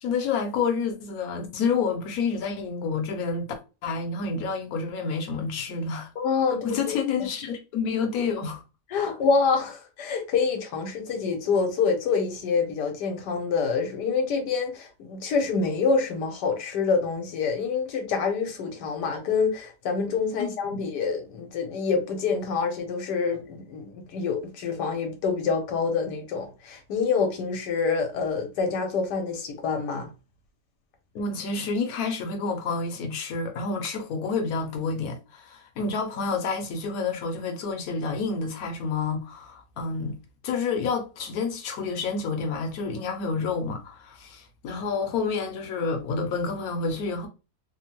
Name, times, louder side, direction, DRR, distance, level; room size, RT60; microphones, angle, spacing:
voice 1, 0.0-3.5 3.8-6.1 6.6-8.6 9.0-9.2 31.1-40.2 40.4-47.3, left 4 dB, 65° left, 1.1 m, -29 dB
voice 2, 6.2-6.9 8.9-30.1, left 5 dB, 85° left, 1.4 m, -26 dB
3.4 x 2.1 x 2.9 m
omnidirectional pair, 1.8 m